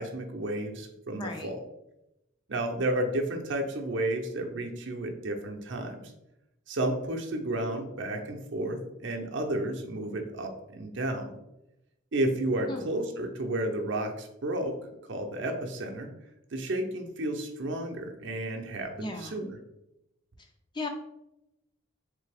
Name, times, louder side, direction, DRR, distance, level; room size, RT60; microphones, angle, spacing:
voice 1, 0.0-1.6 2.5-6.1 6.7-11.3 12.1-14.8 15.1-16.1 16.5-19.6, right 1 dB, 60° right, 3 dB, 0.6 m, -32 dB
voice 2, 1.2-1.5 12.7-12.9 19.0-19.4 20.7-20.9, left 3 dB, 25° left, 4 dB, 0.4 m, -36 dB
3.9 x 3.3 x 3.4 m, 0.89 s
head